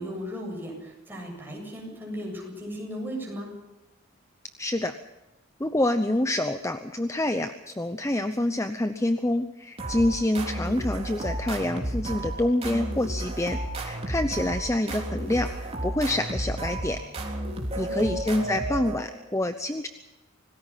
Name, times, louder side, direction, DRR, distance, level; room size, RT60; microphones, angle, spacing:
voice 1, 0.0-3.5 17.8-18.1, equal, 10° right, -1 dB, 7.6 m, -36 dB
voice 2, 4.6-4.9 5.6-17.0 17.8-19.9, left 1 dB, 15° left, 9 dB, 0.8 m, -27 dB
sound 1, 9.8-19.3, right 1 dB, 30° right, 3.7 m, -32 dB
26.5 x 19.0 x 5.7 m, 1.0 s
head